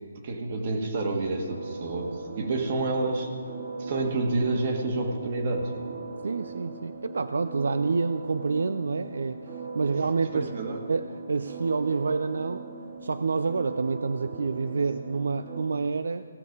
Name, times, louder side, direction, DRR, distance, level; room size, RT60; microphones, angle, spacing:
voice 1, 0.2-3.3 3.8-5.7 10.3-10.8, right 2 dB, 40° right, 3 dB, 1.7 m, -28 dB
sound 1, 1.3-15.6, right 4 dB, 55° right, 2.2 m, -39 dB
voice 2, 6.2-9.4 9.7-10.5 10.9-12.6 13.0-16.2, right 4 dB, 75° right, 12 dB, 0.4 m, -28 dB
17.0 x 6.6 x 5.3 m, 2.2 s
hypercardioid pair, 160°, 0 cm